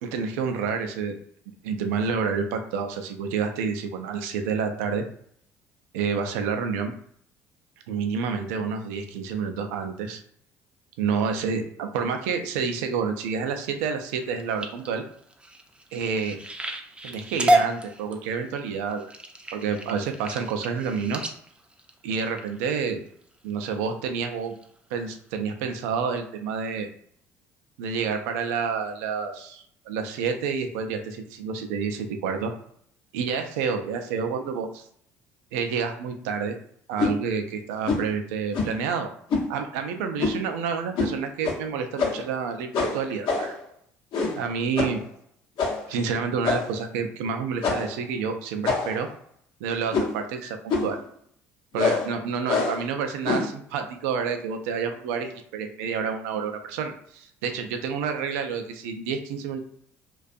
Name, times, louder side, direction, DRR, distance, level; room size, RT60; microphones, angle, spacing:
voice 1, 0.0-1.2 1.6-5.0 5.9-6.9 7.9-10.2 11.0-15.0 15.9-16.4 17.0-19.1 19.5-21.2 22.0-23.0 23.4-24.5 24.9-26.9 27.8-32.5 33.1-34.8 35.5-36.6 36.9-39.1 39.5-43.6 44.4-45.0 45.9-49.1 49.6-51.0 51.7-59.6, right 6 dB, 80° right, 6 dB, 0.4 m, -29 dB
sound 1, 14.2-22.9 23.5-23.8 24.3-24.6 25.1-25.2 25.5-25.6, equal, 15° right, 0.4 m, -30 dB
sound 2, 37.0-37.2 37.9-38.1 38.5-38.8 39.3-39.5 40.2-40.5 41.0-41.1 41.4-41.6 42.0-42.3 42.7-43.6 44.1-44.5 44.8-45.0 45.6-45.9 46.4-46.8 47.6-48.0 48.6-49.1 49.9-50.2 50.7-51.0 51.8-52.1 52.5-52.8 53.2-53.6, left 4 dB, 60° left, 0.7 m, -26 dB
2.5 x 2.2 x 2.4 m, 0.66 s
hypercardioid pair, 65°, 8 cm